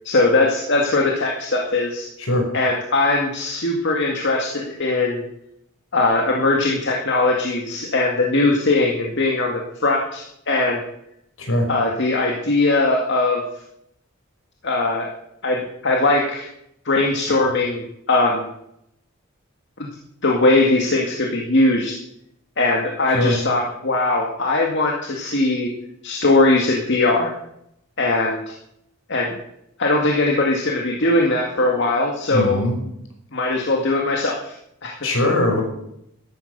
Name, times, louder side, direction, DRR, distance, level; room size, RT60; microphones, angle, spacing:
voice 1, 0.0-2.1 2.5-5.2 5.9-10.8 11.7-13.4 14.6-15.1 15.4-16.5 16.9-18.5 19.8-19.9 20.2-21.9 22.6-25.7 26.0-27.3 28.0-28.5 29.1-29.4 29.8-32.6 33.3-34.5 34.8-35.0, left 2 dB, 55° left, 0 dB, 2.1 m, -20 dB
voice 2, 32.3-32.8 35.0-35.6, left 1 dB, 75° left, 2 dB, 5.4 m, -20 dB
13.0 x 12.5 x 6.7 m, 0.78 s
head